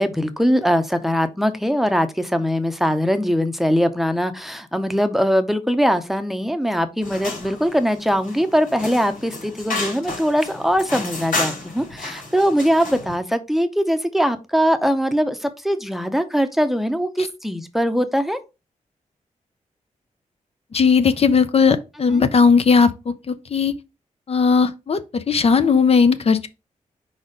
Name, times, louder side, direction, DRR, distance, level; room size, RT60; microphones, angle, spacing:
voice 1, 0.0-18.4 22.1-22.2, equal, ahead, 0.7 m, -21 dB
sound 1, 7.0-13.1, left 3 dB, 85° left, 2.8 m, -31 dB
voice 2, 20.7-22.9 23.3-23.7 24.3-26.5, left 5 dB, 50° left, 0.5 m, -17 dB
4.9 x 4.1 x 4.9 m
wide cardioid pair, 120°, 13 cm